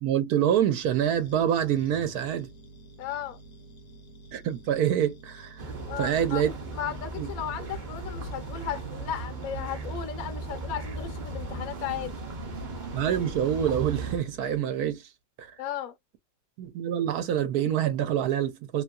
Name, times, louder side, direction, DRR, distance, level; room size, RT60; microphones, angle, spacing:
voice 1, 0.0-2.5 4.3-5.6 6.0-6.5 7.2-7.3 12.9-15.1 15.4-15.5 16.6-18.8, right 10 dB, 70° right, 1.1 m, -26 dB
sound 1, 0.8-14.6, right 2 dB, 40° left, 0.7 m, -50 dB
voice 2, 3.0-3.4 5.8-6.4 6.7-12.2 15.6-15.9, left 9 dB, 65° left, 1.0 m, -35 dB
sound 2, 5.6-14.2, right 2 dB, 50° right, 0.5 m, -37 dB
2.9 x 2.6 x 2.2 m
omnidirectional pair, 1.8 m